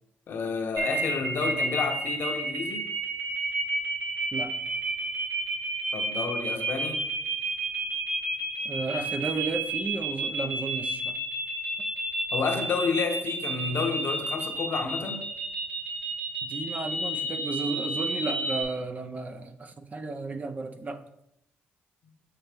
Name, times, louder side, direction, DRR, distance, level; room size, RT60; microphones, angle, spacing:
voice 1, 0.3-2.9 5.9-7.0 12.3-15.2, left 4 dB, 60° left, 5 dB, 0.9 m, -30 dB
sound 1, 0.8-18.6, right 2 dB, 75° right, 2.0 m, -30 dB
voice 2, 8.6-11.1 16.4-21.0, right 3 dB, 35° right, 8 dB, 0.7 m, -33 dB
7.7 x 4.2 x 3.5 m, 0.79 s
supercardioid pair, 65°, 4 cm